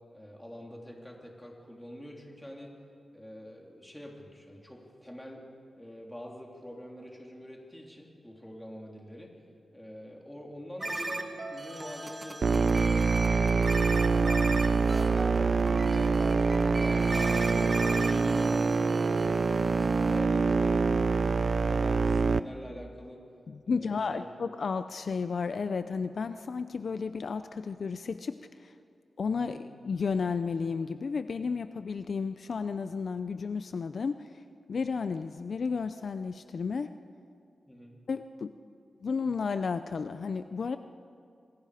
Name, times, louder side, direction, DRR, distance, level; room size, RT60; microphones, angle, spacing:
voice 1, 0.1-2.7 3.1-5.4 5.7-9.3 9.7-13.6 14.1-18.6 19.7-23.2 23.6-24.2 29.4-29.6 37.7-38.0, equal, 10° left, -1 dB, 3.3 m, -45 dB
sound 1, 10.8-20.2, right 2 dB, 30° right, 1.6 m, -37 dB
sound 2, 12.4-22.4, right 4 dB, 55° right, 0.5 m, -25 dB
voice 2, 23.5-28.7 29.2-34.4 34.7-36.9 38.1-38.5 39.0-40.8, left 5 dB, 60° left, 10 dB, 0.5 m, -33 dB
27.0 x 21.0 x 5.0 m, 2.4 s
wide cardioid pair, 110°, 0 cm